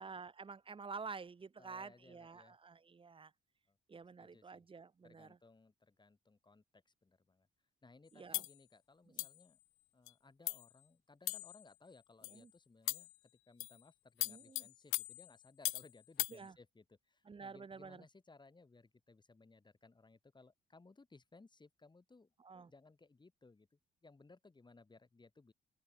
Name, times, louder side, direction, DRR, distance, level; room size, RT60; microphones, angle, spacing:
voice 1, 0.0-3.3 3.9-5.4 8.1-8.4 9.1-9.3 12.3-12.5 14.3-14.7 16.3-16.6 17.3-18.0 22.4-22.7, right 5 dB, 25° right, 0.9 m, -50 dB
voice 2, 1.6-2.6 3.7-4.6 5.0-7.5 7.8-9.6 9.9-13.1 13.5-22.3 22.7-25.5, left 3 dB, 20° left, 3.7 m, -63 dB
sound 1, 8.3-8.6 9.2-9.4 10.1-10.2 10.5-10.7 11.3-11.6 12.2-12.4 12.9-13.2 13.6-13.8 14.2-15.9 16.2-16.4, left 19 dB, 85° left, 0.4 m, -39 dB
open air
cardioid pair, 90°, 20 cm